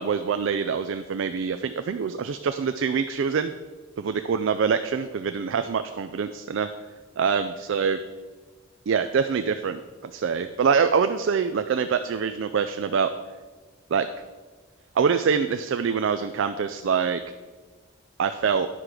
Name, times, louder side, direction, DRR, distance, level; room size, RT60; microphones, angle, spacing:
voice 1, 0.0-3.5 4.0-6.7 7.2-8.0 8.9-13.1 13.9-14.1 15.0-17.2 18.2-18.7, right 6 dB, 65° right, 10 dB, 0.3 m, -25 dB
10.0 x 6.1 x 4.9 m, 1.4 s
head